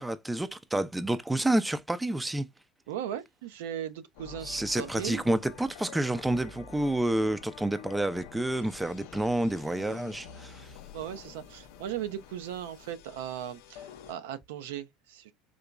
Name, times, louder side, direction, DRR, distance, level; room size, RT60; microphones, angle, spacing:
voice 1, 0.0-2.5 4.4-10.7, right 1 dB, 10° right, 0.4 m, -29 dB
voice 2, 2.9-5.2 10.9-15.3, right 10 dB, 75° right, 0.4 m, -38 dB
sound 1, 4.2-14.1, left 8 dB, 65° left, 0.4 m, -48 dB
3.8 x 2.9 x 2.2 m
hypercardioid pair, 75°, 0 cm